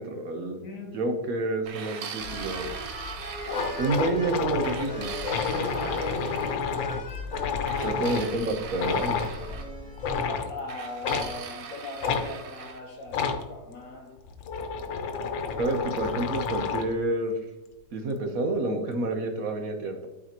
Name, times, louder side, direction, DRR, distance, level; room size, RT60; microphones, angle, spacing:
voice 1, 0.0-0.6 0.9-2.7 3.8-5.1 7.8-9.3 15.6-17.4 17.9-20.1, right 2 dB, 60° right, 1.0 m, -29 dB
voice 2, 0.6-1.0 5.4-6.9 10.3-14.2, left 2 dB, 55° left, 1.0 m, -38 dB
sound 1, 1.7-4.2 4.6-6.6 7.7-9.7 10.7-12.8, right 7 dB, 80° right, 1.4 m, -40 dB
sound 2, 2.2-10.2, left 2 dB, 35° left, 1.7 m, -39 dB
sound 3, 2.8-2.9 3.2-3.3 3.5-8.3 8.8-9.3 10.0-10.5 11.0-11.3 12.0-12.2 13.1-13.4 14.2-17.0, left 5 dB, 85° left, 1.5 m, -30 dB
12.0 x 4.1 x 2.9 m
omnidirectional pair, 2.0 m